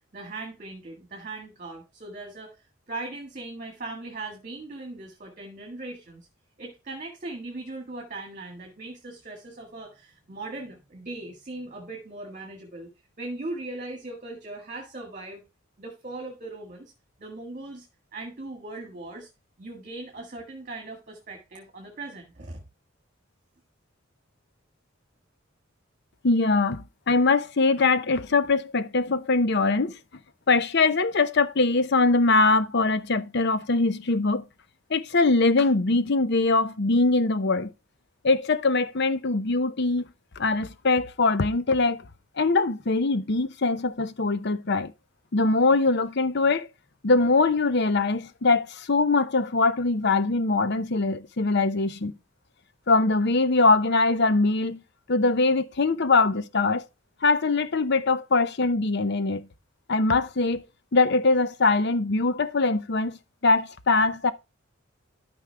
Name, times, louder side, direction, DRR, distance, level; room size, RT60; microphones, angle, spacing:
voice 1, 0.1-6.3 6.6-12.9 13.2-15.4 15.8-16.9 17.2-17.9 18.1-19.3 19.6-22.6, right 2 dB, 40° right, 1.8 m, -39 dB
voice 2, 26.2-29.9 30.5-34.4 34.9-37.7 38.2-40.1 40.4-42.0 42.4-44.9 45.3-46.7 47.0-52.2 52.9-54.8 55.1-56.9 57.2-59.5 59.9-60.6 60.9-64.3, left 3 dB, 55° left, 0.7 m, -22 dB
12.5 x 5.3 x 3.4 m
head